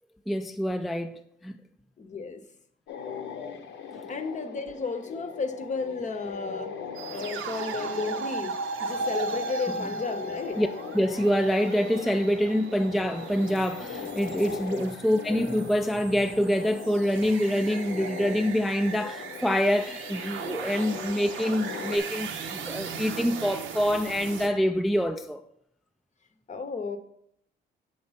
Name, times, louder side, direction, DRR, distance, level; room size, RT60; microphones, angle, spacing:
voice 1, 0.3-1.6 3.9-4.0 7.8-7.9 10.6-10.7 10.9-25.4, equal, ahead, 0.3 m, -26 dB
voice 2, 2.0-2.4 4.1-6.7 7.1-8.5 8.8-10.6 26.5-27.0, left 4 dB, 40° left, 0.7 m, -33 dB
sound 1, 2.9-22.0, left 6 dB, 70° left, 0.8 m, -41 dB
sound 2, 6.9-24.5, right 4 dB, 80° right, 0.7 m, -37 dB
6.8 x 3.2 x 5.6 m
cardioid pair, 90°, 20 cm